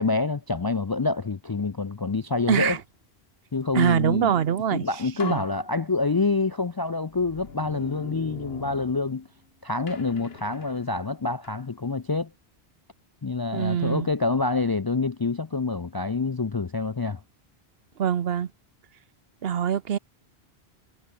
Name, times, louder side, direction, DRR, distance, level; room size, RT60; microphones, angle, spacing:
voice 1, 0.0-2.8 3.5-4.3 4.7-9.3 9.6-12.3 13.2-17.2, left 3 dB, 35° left, 0.4 m, -27 dB
voice 2, 2.5-2.8 3.7-5.4 13.5-14.1 18.0-18.5 19.4-20.0, right 8 dB, 70° right, 1.1 m, -24 dB
sound 1, 4.6-4.7 5.2-6.5 7.1-9.5 9.9-11.7, left 4 dB, 75° left, 2.0 m, -42 dB
omnidirectional pair, 1.0 m